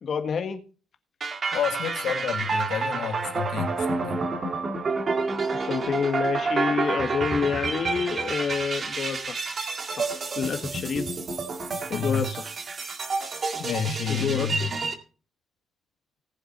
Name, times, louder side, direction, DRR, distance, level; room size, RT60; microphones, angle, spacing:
voice 1, 0.0-0.6 5.5-9.4 9.9-11.1 11.9-12.5 14.1-14.5, left 6 dB, 45° left, 1.5 m, -28 dB
sound 1, 1.2-14.9, right 4 dB, 35° right, 1.8 m, -29 dB
voice 2, 1.5-4.2 11.7-12.3 13.6-14.7, left 8 dB, 80° left, 1.8 m, -30 dB
18.5 x 7.3 x 4.3 m
cardioid pair, 155°, 0 cm